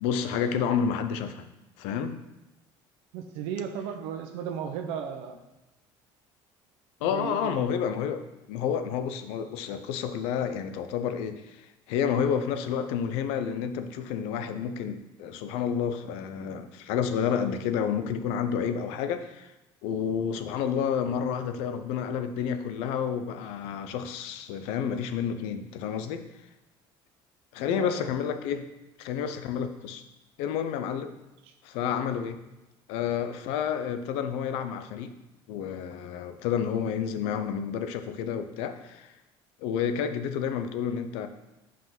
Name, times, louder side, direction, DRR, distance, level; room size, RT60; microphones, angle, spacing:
voice 1, 0.0-1.5 1.8-2.2 7.0-19.5 19.8-26.3 27.5-28.7 29.0-30.0 30.4-31.1 31.6-32.4 32.9-35.1 35.5-39.1 39.6-41.3, left 7 dB, 85° left, 9 dB, 0.6 m, -30 dB
voice 2, 3.1-5.4 7.0-7.7 27.7-28.1 31.4-31.5, right 8 dB, 80° right, 6 dB, 1.0 m, -35 dB
5.6 x 5.1 x 5.9 m, 0.98 s
cardioid pair, 165°, 10 cm